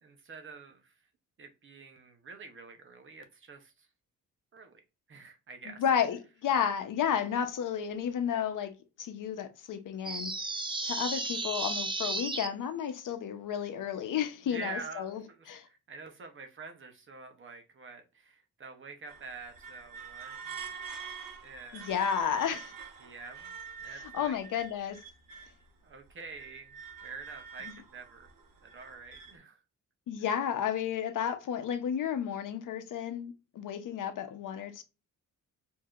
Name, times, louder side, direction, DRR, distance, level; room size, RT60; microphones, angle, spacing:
voice 1, 0.0-0.9 1.4-3.9 4.5-4.8 5.1-5.8 14.5-20.7 21.4-21.9 22.3-22.6 23.0-23.5 23.8-24.4 25.8-28.3 28.6-29.6, right 4 dB, 35° right, 0.8 m, -47 dB
voice 2, 5.7-8.7 9.0-10.3 10.8-15.2 15.5-15.7 21.7-22.7 24.0-25.0 27.7-27.8 30.1-34.8, left 8 dB, 70° left, 0.8 m, -32 dB
sound 1, 10.0-12.5, right 2 dB, 15° right, 0.4 m, -34 dB
sound 2, 19.1-25.7 26.1-29.4, right 6 dB, 85° right, 1.0 m, -46 dB
4.7 x 2.8 x 2.4 m
wide cardioid pair, 160°, 33 cm